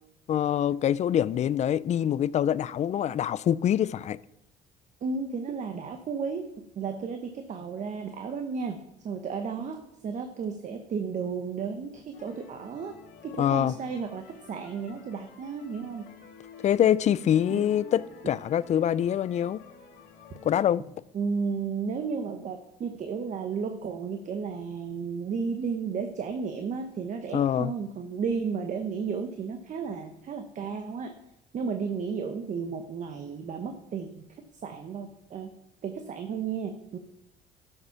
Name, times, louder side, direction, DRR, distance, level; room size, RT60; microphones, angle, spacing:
voice 1, 0.3-4.2 13.4-13.7 16.6-19.6 20.4-20.8 27.3-27.7, left 10 dB, 45° left, 0.4 m, -25 dB
voice 2, 5.0-6.5 6.8-12.9 13.2-16.1 17.5-17.7 21.1-31.1 31.5-34.2 34.6-35.5 35.8-37.0, right 5 dB, 45° right, 1.0 m, -33 dB
sound 1, 12.1-20.7, left 6 dB, 75° left, 1.8 m, -50 dB
12.0 x 6.6 x 5.8 m
cardioid pair, 110°, 17 cm